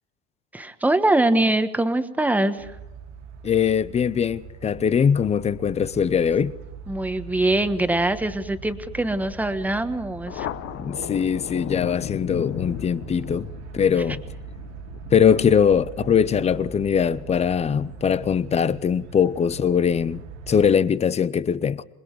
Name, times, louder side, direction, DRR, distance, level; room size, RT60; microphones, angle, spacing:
voice 1, 0.5-2.7 6.9-10.5, right 2 dB, 5° right, 1.3 m, -23 dB
sound 1, 2.6-20.7, right 6 dB, 90° right, 3.1 m, -41 dB
voice 2, 3.4-6.5 10.7-13.5 13.7-14.2 15.1-21.8, left 7 dB, 20° left, 0.7 m, -21 dB
Thunder, 10.3-17.3, left 12 dB, 40° left, 1.0 m, -36 dB
27.0 x 20.5 x 4.7 m
supercardioid pair, 125°, 32 cm